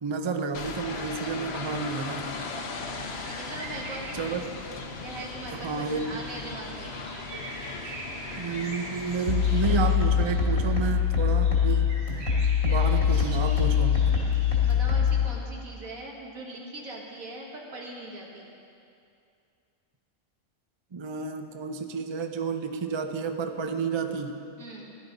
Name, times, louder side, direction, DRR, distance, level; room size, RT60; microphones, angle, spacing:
voice 1, 0.0-2.3 4.1-4.4 5.5-6.2 8.4-11.9 12.6-14.1 20.9-24.4, right 5 dB, 40° right, 6 dB, 0.4 m, -31 dB
sound 1, 0.5-10.0, left 3 dB, 55° left, 1.0 m, -38 dB
sound 2, 2.7-14.8, right 1 dB, 60° right, 2.0 m, -44 dB
voice 2, 3.3-4.4 5.0-7.0 14.7-18.5 24.6-25.0, right 2 dB, 80° right, -2 dB, 2.1 m, -40 dB
sound 3, 9.3-15.3, left 7 dB, 80° left, 2.4 m, -23 dB
16.0 x 11.0 x 4.0 m, 2.5 s
omnidirectional pair, 1.4 m